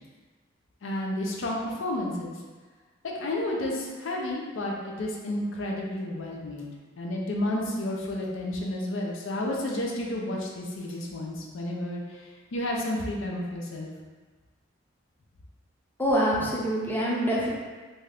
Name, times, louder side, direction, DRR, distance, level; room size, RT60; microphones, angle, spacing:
voice 1, 0.8-2.4 3.0-6.7 7.0-13.9, left 1 dB, 85° left, -1 dB, 0.5 m, -31 dB
voice 2, 16.0-17.5, equal, 10° left, -5 dB, 0.5 m, -25 dB
2.7 x 2.4 x 3.3 m, 1.4 s
head